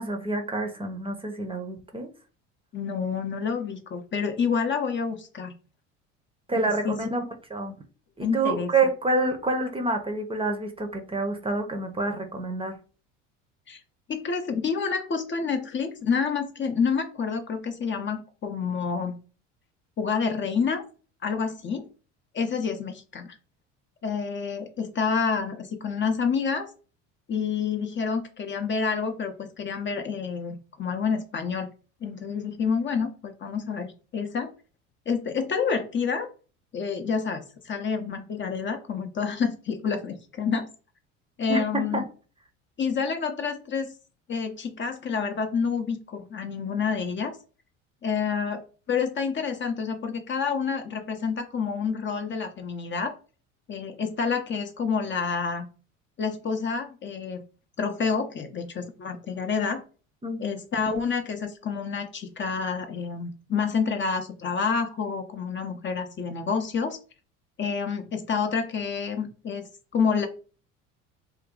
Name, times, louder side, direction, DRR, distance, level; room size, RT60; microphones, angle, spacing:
voice 1, 0.0-2.1 6.5-7.2 7.5-7.7 8.2-12.8 41.5-41.6 41.9-42.0 60.2-60.5, right 2 dB, 15° right, 0.6 m, -27 dB
voice 2, 2.7-5.5 6.5-7.0 8.2-8.7 13.7-13.8 14.1-19.2 20.0-20.8 21.2-21.9 22.3-23.3 24.0-26.7 27.3-31.7 32.0-34.5 35.1-36.3 36.7-40.7 41.4-42.0 42.8-43.9 44.3-47.4 48.0-48.6 48.9-53.1 53.7-55.7 56.2-57.4 57.8-59.8 60.4-67.0 67.6-69.7 69.9-70.3, left 5 dB, 30° left, 0.6 m, -28 dB
2.6 x 2.2 x 3.6 m
hypercardioid pair, 70°, 37 cm